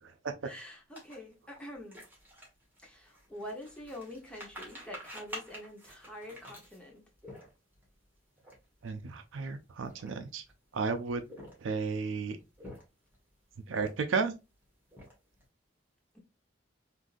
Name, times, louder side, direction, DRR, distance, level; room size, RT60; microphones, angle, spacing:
voice 1, 0.4-2.0 2.8-7.0, left 1 dB, 5° left, 1.0 m, -46 dB
sound 1, 0.9-7.8 8.4-8.6 8.8-9.0 9.7-10.5 11.1-11.9 12.4-13.2 13.7-14.3 14.6-15.4, equal, 10° right, 1.3 m, -48 dB
voice 2, 8.8-10.4 10.7-11.2 11.6-12.4 13.7-14.3, right 4 dB, 90° right, 0.5 m, -33 dB
3.7 x 2.6 x 2.4 m
head